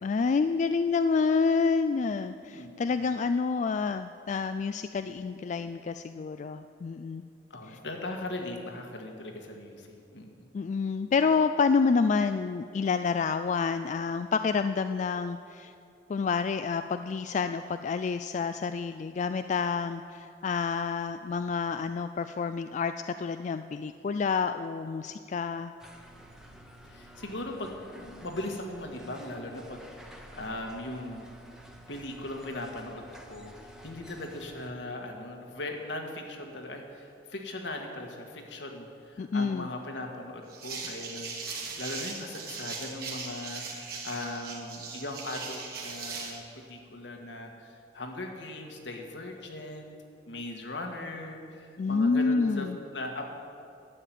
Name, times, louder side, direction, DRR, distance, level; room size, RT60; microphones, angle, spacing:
voice 1, 0.0-7.2 10.5-15.7 16.1-25.7 39.2-39.7 51.8-52.8, left 5 dB, 40° left, 9 dB, 0.3 m, -28 dB
voice 2, 2.5-3.0 7.5-10.5 26.9-31.3 31.9-33.5 33.8-49.9 50.2-52.7 52.9-53.3, left 1 dB, 75° left, 2 dB, 1.7 m, -39 dB
sound 1, 25.8-34.7, equal, 5° right, 1.0 m, -50 dB
sound 2, 40.5-46.4, right 4 dB, 55° right, 2.2 m, -39 dB
12.0 x 7.7 x 9.1 m, 2.5 s
head